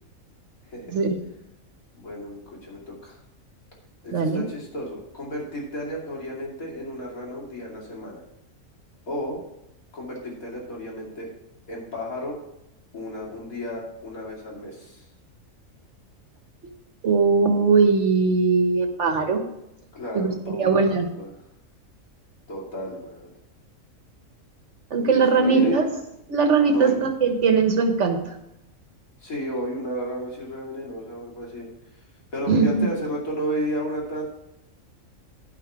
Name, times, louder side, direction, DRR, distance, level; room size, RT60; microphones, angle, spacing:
voice 1, 2.0-3.2 4.0-8.2 9.1-9.4 9.9-11.3 11.7-12.4 12.9-15.0 19.9-21.3 22.5-23.3 25.0-25.8 26.7-27.0 29.2-31.7 32.3-34.2, equal, 80° left, -3 dB, 3.1 m, -32 dB
voice 2, 4.1-4.4 17.0-19.4 20.1-21.1 24.9-25.8 26.3-28.2 32.5-32.9, right 4 dB, 55° right, 5 dB, 1.6 m, -20 dB
11.0 x 5.8 x 4.8 m, 0.85 s
omnidirectional pair, 1.5 m